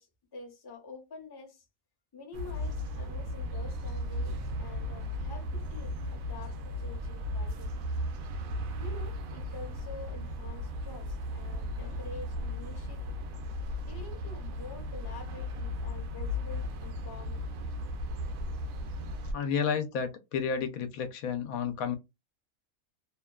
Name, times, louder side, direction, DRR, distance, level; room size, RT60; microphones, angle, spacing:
voice 1, 0.0-1.6 2.1-7.9 8.8-13.1 13.8-17.4, left 4 dB, 25° left, 0.6 m, -47 dB
sound 1, 2.3-19.3, left 1 dB, 80° right, 1.0 m, -36 dB
voice 2, 19.3-22.0, left 6 dB, 85° left, 1.1 m, -31 dB
2.8 x 2.2 x 2.2 m
omnidirectional pair, 1.4 m